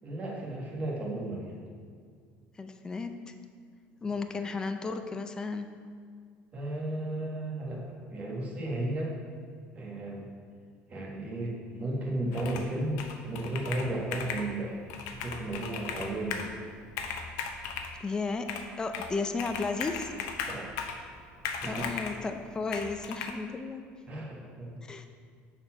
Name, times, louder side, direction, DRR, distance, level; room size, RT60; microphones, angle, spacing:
voice 1, 0.0-1.6 4.1-4.2 6.5-7.8 8.1-9.1 9.7-10.3 10.9-14.8 15.2-16.5 20.4-20.7 21.6-22.0 24.1-24.8, right 1 dB, 30° right, -2 dB, 1.7 m, -34 dB
voice 2, 2.6-3.3 4.0-5.7 18.0-18.5 18.8-20.1 21.7-23.8 24.8-25.1, left 4 dB, 15° left, 7 dB, 0.4 m, -34 dB
Computer keyboard, 12.3-12.7 13.0-14.5 14.9-16.5 16.9-17.9 18.5-19.1 19.4-21.0 21.4-22.2 22.7-23.3, left 6 dB, 85° left, 0.7 m, -37 dB
6.8 x 4.3 x 5.9 m, 2.1 s
cardioid pair, 135°, 4 cm